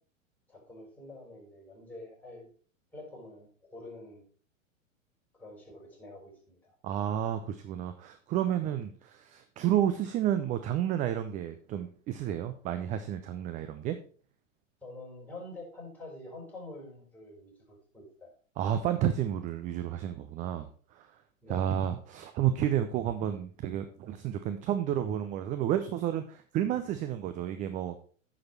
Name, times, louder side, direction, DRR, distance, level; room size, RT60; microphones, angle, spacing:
voice 1, 0.5-2.5 2.9-4.3 5.3-6.7 14.8-18.3 21.4-21.6, left 2 dB, 5° left, -4 dB, 5.1 m, -47 dB
voice 2, 6.8-14.0 18.6-21.1 21.5-28.0, right 10 dB, 20° right, 9 dB, 0.5 m, -31 dB
9.5 x 6.3 x 4.4 m, 0.43 s
figure-of-eight pair, 100°, 40 cm